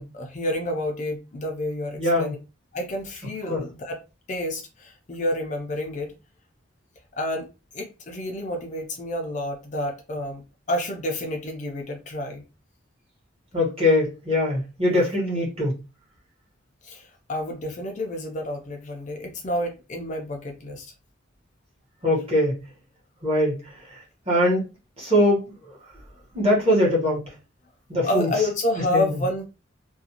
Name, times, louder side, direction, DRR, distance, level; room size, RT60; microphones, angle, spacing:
voice 1, 0.0-2.4 2.7-4.0 4.3-6.1 7.2-7.5 7.7-10.4 10.7-12.4 16.8-20.9 28.0-29.5, left 1 dB, 35° left, 0.4 m, -29 dB
voice 2, 2.0-2.3 3.5-3.6 13.5-15.7 22.0-22.6 23.2-23.6 24.3-24.6 25.0-25.5 26.3-27.2 27.9-28.3 28.9-29.1, left 1 dB, 30° right, 1.1 m, -21 dB
2.5 x 2.2 x 2.8 m
head